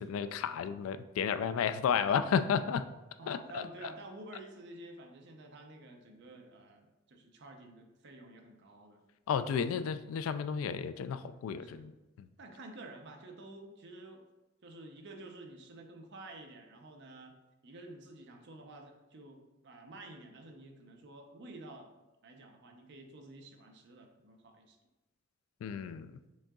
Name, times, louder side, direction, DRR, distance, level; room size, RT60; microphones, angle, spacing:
voice 1, 0.0-2.8 3.3-3.6 9.3-11.9 12.2-12.3 25.6-26.1, left 7 dB, 90° left, 13 dB, 0.3 m, -32 dB
voice 2, 3.2-9.0 9.7-9.9 11.6-12.0 12.4-14.2 14.6-17.4 17.6-21.9 22.2-24.8, right 2 dB, 60° right, 3 dB, 0.7 m, -50 dB
6.2 x 3.7 x 2.3 m, 1.0 s
head